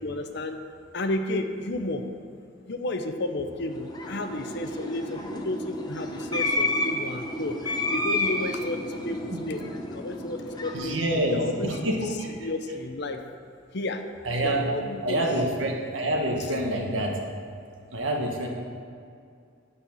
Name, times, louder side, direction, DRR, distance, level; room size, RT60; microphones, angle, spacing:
voice 1, 0.0-0.7 0.9-2.1 2.7-9.6 9.9-11.8 12.4-13.2 13.7-14.1 14.4-15.2, left 2 dB, 60° left, 7 dB, 0.8 m, -32 dB
sound 1, 3.6-12.1, left 1 dB, 20° left, 0.9 m, -31 dB
voice 2, 10.7-12.3 14.2-14.7 15.0-17.2 17.9-18.5, right 1 dB, 75° right, 1 dB, 1.6 m, -27 dB
9.9 x 5.6 x 7.1 m, 2.3 s
head